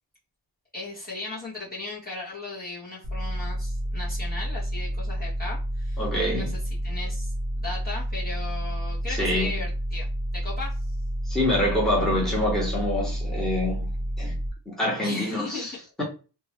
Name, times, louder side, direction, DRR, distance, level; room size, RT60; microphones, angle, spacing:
voice 1, 0.7-6.0 6.3-6.5 6.8-10.0 10.3-10.8 15.0-15.7, left 3 dB, 20° left, 1.3 m, -36 dB
sound 1, 3.0-14.5, equal, 50° right, 0.9 m, -30 dB
voice 2, 6.0-6.5 9.1-9.5 11.3-13.9 14.2-14.3 14.6-16.0, left 1 dB, ahead, 1.4 m, -26 dB
2.8 x 2.5 x 2.9 m
wide cardioid pair, 95°, 42 cm